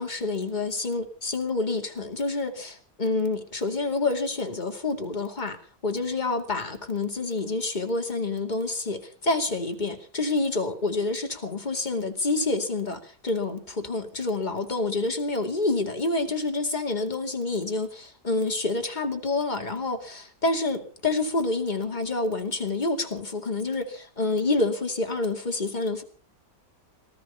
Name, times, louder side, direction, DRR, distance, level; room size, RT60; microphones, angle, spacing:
voice 1, 0.0-5.6 5.8-26.0, left 3 dB, 25° left, 4 dB, 2.5 m, -28 dB
19.0 x 13.5 x 5.6 m, 0.42 s
omnidirectional pair, 1.8 m